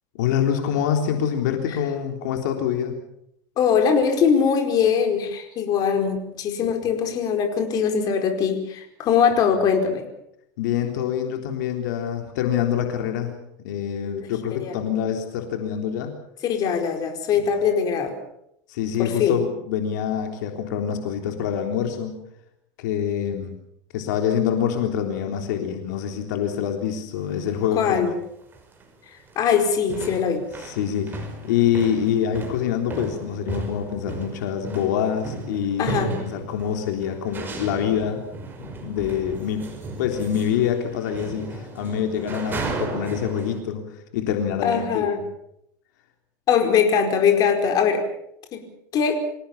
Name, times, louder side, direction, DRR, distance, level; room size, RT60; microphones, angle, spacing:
voice 1, 0.1-3.0 10.6-13.3 13.6-16.1 18.7-22.2 22.8-23.5 23.9-28.1 30.6-38.2 38.8-39.7 40.0-43.8 44.1-45.1, left 9 dB, 80° left, 4 dB, 3.6 m, -25 dB
voice 2, 3.6-10.0 14.6-14.8 16.4-18.2 19.0-19.4 27.8-28.1 29.3-30.4 35.8-36.2 44.6-45.2 46.5-48.0 48.5-48.6 48.9-49.2, left 7 dB, 40° left, 5 dB, 4.7 m, -21 dB
sound 1, 27.2-27.4 28.1-28.2 28.5-28.9 29.2-43.6, right 3 dB, 20° right, 5.6 m, -35 dB
26.5 x 17.5 x 7.2 m, 0.77 s
supercardioid pair, 130°, 9 cm